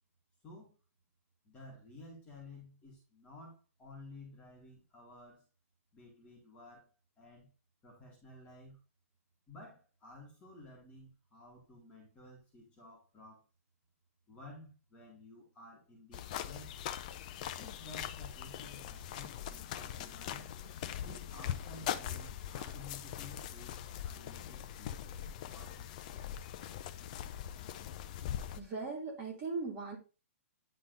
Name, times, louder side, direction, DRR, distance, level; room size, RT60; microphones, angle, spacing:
voice 1, 0.4-0.8 1.4-5.4 5.9-6.9 7.2-7.5 7.8-8.8 9.5-13.4 14.3-16.8 17.6-20.5 21.0-25.2 25.5-26.0, left 2 dB, 15° left, -3 dB, 2.1 m, -53 dB
sound 1, 16.1-28.6, left 10 dB, 30° left, 0.5 m, -41 dB
voice 2, 28.5-30.0, right 4 dB, 20° right, -2 dB, 2.3 m, -39 dB
9.9 x 3.9 x 3.9 m, 0.31 s
hypercardioid pair, 170°, 8 cm